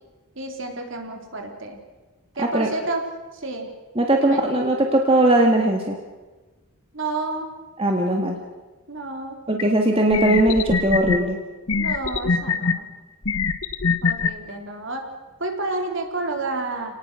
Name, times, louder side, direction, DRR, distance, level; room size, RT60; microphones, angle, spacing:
voice 1, 0.4-1.8 2.3-3.0 3.3-3.7 4.2-4.5 6.9-7.5 8.9-9.4 11.8-12.9 14.0-15.0 15.4-16.9, right 2 dB, 55° right, 3 dB, 3.7 m, -30 dB
voice 2, 2.4-2.7 3.9-6.0 7.8-8.3 9.5-11.4, right 1 dB, 25° right, 2 dB, 1.8 m, -19 dB
sound 1, 9.6-9.7 10.1-11.2 11.7-12.7 13.2-14.3, left 4 dB, 70° left, 1.2 m, -22 dB
30.0 x 19.0 x 6.3 m, 1.2 s
head